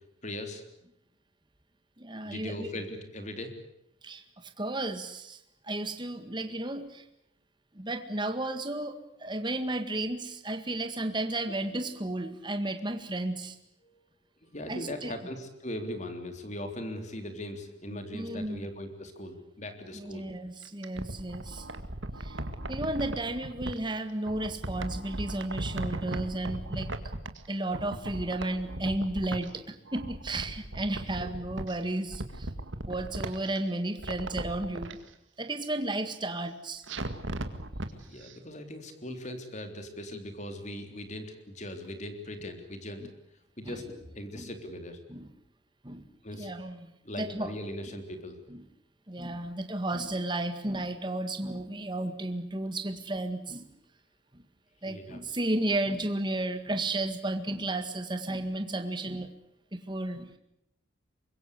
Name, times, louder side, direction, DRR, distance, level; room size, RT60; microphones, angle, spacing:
voice 1, 0.2-0.6 2.2-3.6 13.8-14.1 14.4-20.3 31.2-31.3 37.9-43.1 43.6-45.0 46.2-46.5 47.0-48.4 54.8-55.2, left 1 dB, 35° left, 7 dB, 3.6 m, -39 dB
voice 2, 2.0-2.7 4.0-7.1 7.7-13.6 14.7-15.1 17.9-18.7 19.9-21.7 22.2-22.4 22.7-26.9 27.5-32.5 32.9-35.0 35.4-36.8 43.0-43.1 43.7-43.8 44.4-44.5 45.1-45.3 45.8-46.1 46.4-47.5 48.5-48.7 49.1-53.7 54.3-54.4 54.8-59.3 59.7-60.3, right 1 dB, 25° right, 8 dB, 1.8 m, -33 dB
sound 1, 20.6-23.8 24.3-27.5 27.7-29.6 29.9-31.8 32.1-33.6 34.0-34.9 36.9-37.9 38.2-38.3, right 1 dB, 75° right, 2.0 m, -37 dB
25.5 x 22.5 x 8.3 m, 0.78 s
head